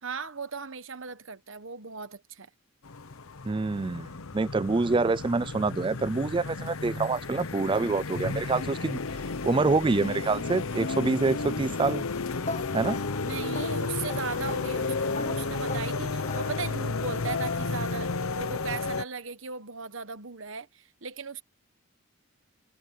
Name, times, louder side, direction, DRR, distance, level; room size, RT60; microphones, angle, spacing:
voice 1, 0.0-2.5 13.2-21.4, right 5 dB, 65° right, 1.2 m, -37 dB
sound 1, 2.8-19.0, left 3 dB, 80° left, 1.0 m, -32 dB
voice 2, 3.4-9.0 9.4-12.1 12.7-13.0, right 3 dB, 25° right, 0.3 m, -26 dB
sound 2, 12.4-17.1, left 3 dB, 35° left, 1.5 m, -40 dB
head